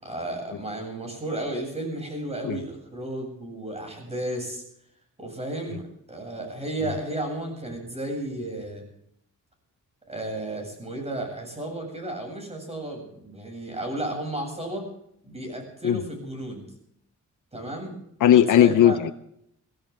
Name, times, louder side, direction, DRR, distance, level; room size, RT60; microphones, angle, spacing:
voice 1, 0.0-4.6 5.2-8.8 10.1-14.9 15.2-16.7 17.5-18.0 18.3-19.0, right 1 dB, 20° right, 3 dB, 7.9 m, -33 dB
voice 2, 18.2-19.1, left 10 dB, 85° left, 8 dB, 0.9 m, -17 dB
24.0 x 16.0 x 3.7 m, 0.72 s
wide cardioid pair, 135°, 31 cm